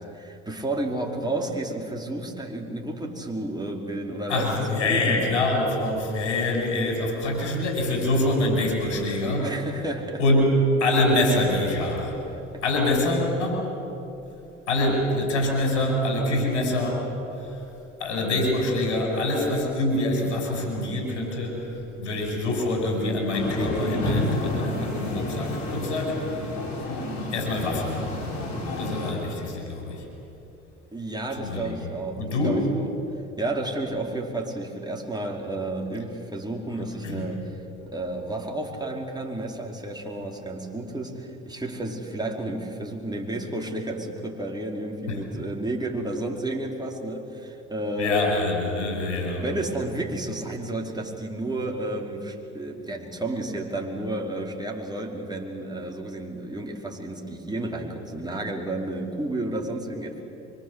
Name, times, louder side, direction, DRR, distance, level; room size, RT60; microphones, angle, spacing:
voice 1, 0.0-4.5 4.9-5.2 9.4-10.2 12.5-12.6 30.9-32.9 33.4-48.3 49.4-60.2, right 1 dB, 10° right, -1 dB, 4.9 m, -31 dB
voice 2, 4.3-9.5 10.2-12.2 12.6-13.7 14.7-16.9 17.3-17.6 18.0-26.4 27.2-28.0 28.8-30.1 31.4-31.8 32.2-32.6 36.7-37.2 45.1-45.2 48.0-49.5, left 1 dB, 85° left, 1 dB, 6.1 m, -25 dB
sound 1, 23.3-29.1, left 1 dB, 55° left, 7.3 m, -30 dB
24.5 x 24.5 x 8.2 m, 2.8 s
hypercardioid pair, 60°, 35 cm